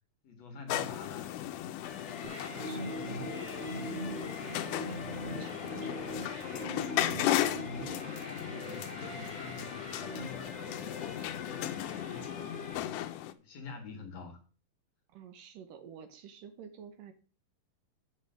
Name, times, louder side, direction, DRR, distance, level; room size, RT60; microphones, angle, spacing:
voice 1, 0.2-1.4 8.3-12.8 13.4-14.4, left 4 dB, 55° left, 4 dB, 2.3 m, -47 dB
sound 1, 0.7-13.3, left 13 dB, 75° left, 1.9 m, -36 dB
sound 2, 1.8-12.7, left 2 dB, 40° left, 1.0 m, -47 dB
sound 3, 2.2-10.2, equal, 25° right, 1.5 m, -42 dB
voice 2, 2.3-5.1 5.4-7.4 15.1-17.1, right 8 dB, 75° right, 8 dB, 2.6 m, -51 dB
8.2 x 5.5 x 7.6 m, 0.37 s
omnidirectional pair, 4.1 m